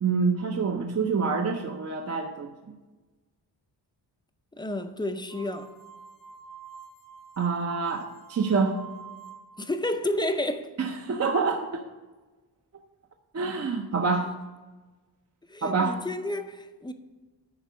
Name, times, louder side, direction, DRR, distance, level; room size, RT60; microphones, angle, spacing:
voice 1, 0.0-2.5 7.4-8.8 10.8-11.8 13.3-14.3 15.6-16.0, right 4 dB, 35° right, 0.6 m, -26 dB
voice 2, 4.6-5.7 9.6-10.7 15.5-16.9, left 1 dB, 10° left, 0.4 m, -30 dB
sound 1, 5.3-9.7, right 7 dB, 85° left, 1.7 m, -47 dB
11.0 x 4.6 x 6.1 m
wide cardioid pair, 170°, 44 cm